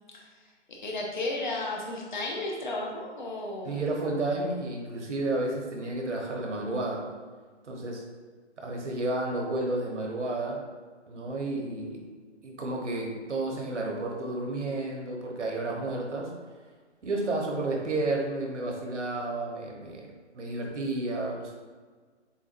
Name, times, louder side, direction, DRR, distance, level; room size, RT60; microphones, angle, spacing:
voice 1, 0.1-3.8, left 2 dB, 40° left, -1 dB, 0.9 m, -34 dB
voice 2, 3.6-7.0 7.7-8.1 8.6-10.6 11.1-12.0 12.4-16.3 17.0-20.1 20.3-21.5, right 2 dB, 80° right, 0 dB, 1.3 m, -31 dB
7.0 x 2.6 x 2.6 m, 1.5 s
hypercardioid pair, 160°, 35 cm